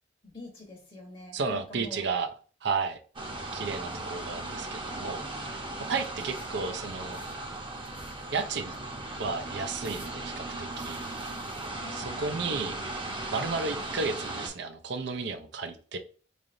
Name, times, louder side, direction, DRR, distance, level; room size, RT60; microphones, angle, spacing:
voice 1, 0.2-2.0 6.2-6.3 11.8-12.3, left 2 dB, 30° left, 1 dB, 0.9 m, -45 dB
voice 2, 1.3-2.3 2.6-3.0 3.5-5.5 5.9-7.2 8.3-8.7 9.2-11.0 11.9-12.8 13.3-16.0, right 4 dB, 70° right, 7 dB, 0.5 m, -33 dB
sound 1, 3.1-14.5, right 2 dB, 30° right, 0.8 m, -37 dB
3.8 x 3.3 x 2.5 m, 0.39 s
head